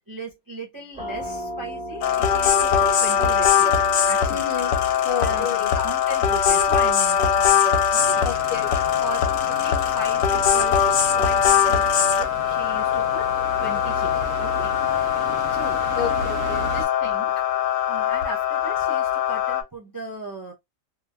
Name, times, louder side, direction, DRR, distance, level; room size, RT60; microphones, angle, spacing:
voice 1, 0.1-4.5 5.2-8.3 9.0-10.9 11.1-13.3 13.6-14.8 15.2-16.0 16.7-17.4 17.9-20.5, right 1 dB, 30° right, 0.4 m, -37 dB
sound 1, 0.9-12.4, right 1 dB, 5° right, 1.2 m, -41 dB
sound 2, 2.0-19.6, left 8 dB, 90° left, 1.0 m, -21 dB
voice 2, 4.3-4.7 5.0-5.7 8.2-8.7 16.0-16.7, left 6 dB, 60° left, 0.6 m, -30 dB
sound 3, 8.0-16.8, right 4 dB, 70° right, 1.1 m, -36 dB
3.0 x 2.5 x 2.2 m
omnidirectional pair, 1.4 m